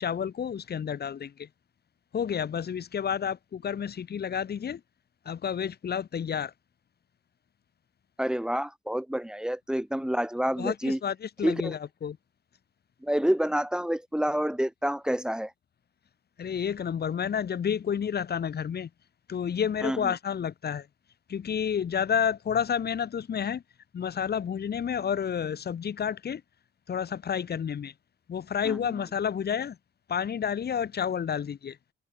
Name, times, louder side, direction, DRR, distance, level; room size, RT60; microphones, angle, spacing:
voice 1, 0.0-1.5 2.1-4.8 5.3-6.5 10.6-12.2 16.4-18.9 19.3-20.9 21.3-23.6 23.9-26.4 26.9-27.9 28.3-29.8 30.1-31.8, left 8 dB, 55° left, 7.0 m, -30 dB
voice 2, 8.2-11.0 11.4-11.8 13.0-15.5 19.8-20.1 28.7-28.8, equal, 5° right, 3.4 m, -28 dB
cardioid pair, 90°, 20 cm